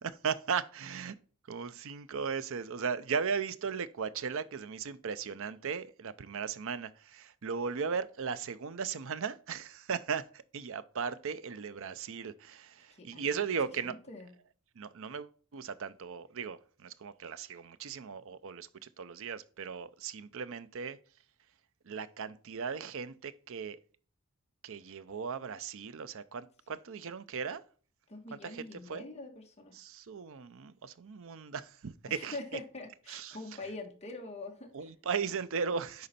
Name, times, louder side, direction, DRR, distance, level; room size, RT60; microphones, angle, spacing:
voice 1, 0.0-1.2 1.5-14.0 14.8-21.0 21.8-23.8 24.6-27.6 28.4-29.0 29.7-32.4 33.1-33.4 34.7-36.1, right 6 dB, 65° right, 0.6 m, -37 dB
voice 2, 12.9-13.5 13.8-14.3 28.1-29.8 32.1-34.7, left 2 dB, 30° left, 1.4 m, -44 dB
10.5 x 4.1 x 4.2 m
head